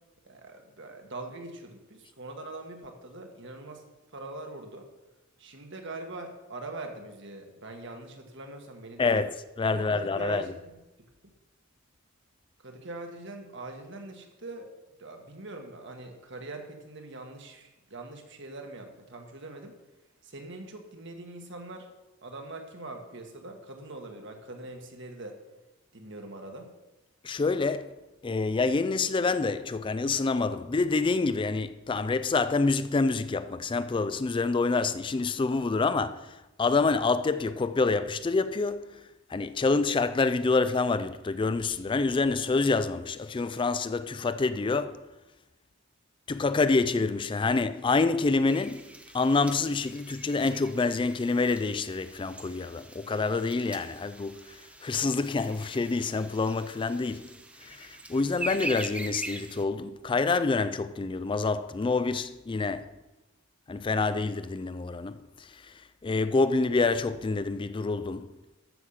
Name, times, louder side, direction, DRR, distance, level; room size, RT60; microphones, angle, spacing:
voice 1, 0.3-3.8 4.1-4.9 5.4-9.2 9.7-10.8 12.6-14.7 15.0-19.7 20.2-21.9 22.2-25.4 25.9-26.7, right 2 dB, 60° right, 1.7 m, -42 dB
voice 2, 9.0-10.4 27.2-27.9 28.2-39.0 39.3-45.0 46.3-48.9 49.1-57.3 57.6-62.9 63.7-65.7 66.0-68.3, left 3 dB, 25° left, 0.3 m, -27 dB
sound 1, 48.5-59.6, right 2 dB, 5° right, 0.7 m, -43 dB
13.5 x 6.5 x 5.7 m
head